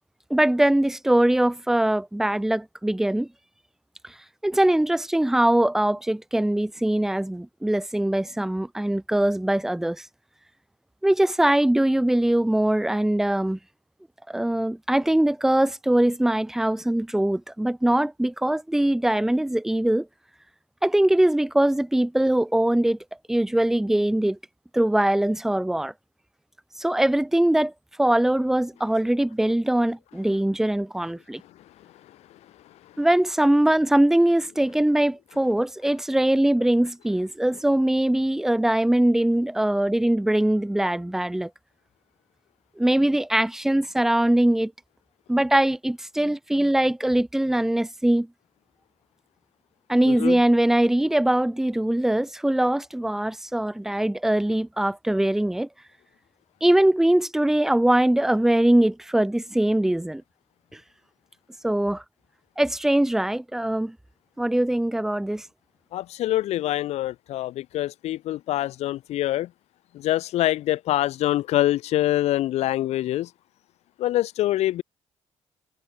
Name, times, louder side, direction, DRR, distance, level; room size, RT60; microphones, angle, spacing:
voice 1, 0.3-3.3 4.0-4.1 4.4-10.1 11.0-13.6 14.3-20.1 20.8-23.0 23.3-24.4 24.7-25.9 26.8-27.7 28.0-31.4 33.0-41.5 42.8-44.7 45.3-48.3 49.9-55.7 56.6-60.2 61.6-62.0 62.6-64.0 64.4-65.4, right 1 dB, 5° right, 0.3 m, -22 dB
voice 2, 65.9-69.5 69.9-73.3 74.0-74.8, left 14 dB, 65° left, 0.4 m, -25 dB
cardioid pair, 160°, 12 cm